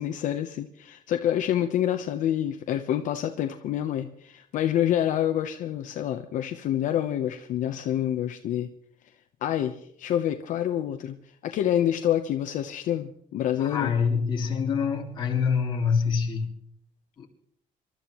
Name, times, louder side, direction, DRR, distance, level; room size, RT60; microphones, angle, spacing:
voice 1, 0.0-8.7 9.4-11.2 11.4-13.9, left 11 dB, 60° left, 0.8 m, -27 dB
voice 2, 13.6-16.5 17.2-17.3, left 6 dB, 30° left, 2.0 m, -26 dB
27.0 x 12.5 x 3.0 m
cardioid pair, 180°, 15 cm